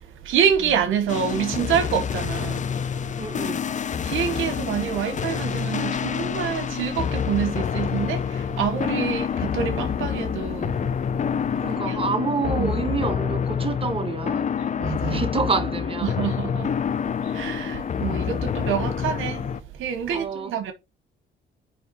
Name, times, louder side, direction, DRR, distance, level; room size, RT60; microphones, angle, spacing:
voice 1, 0.0-2.7 4.0-10.9 11.7-12.0 12.4-12.8 14.8-15.2 16.0-16.7 17.2-19.5 19.7-20.7, right 8 dB, 85° right, 1.1 m, -27 dB
sound 1, 1.1-19.6, left 7 dB, 40° left, 0.6 m, -27 dB
voice 2, 3.2-3.6 11.6-14.5 15.1-16.2 20.1-20.5, right 4 dB, 30° right, 1.2 m, -28 dB
9.5 x 3.2 x 4.1 m
cardioid pair, 90°, 20 cm